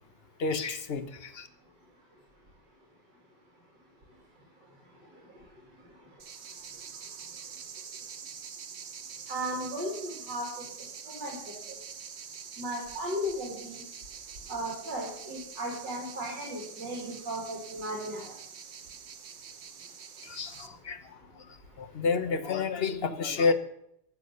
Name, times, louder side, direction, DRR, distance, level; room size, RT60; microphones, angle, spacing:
voice 1, 0.4-1.5 20.2-21.2 21.8-23.5, left 4 dB, 45° left, 9 dB, 0.8 m, -30 dB
sound 1, 6.2-20.7, right 7 dB, 50° right, 0.9 m, -45 dB
voice 2, 9.3-10.7 11.1-11.4 11.7-11.8 12.6-13.8 14.5-18.3, equal, 70° right, -2 dB, 3.3 m, -35 dB
13.0 x 7.2 x 6.8 m, 0.77 s
omnidirectional pair, 2.0 m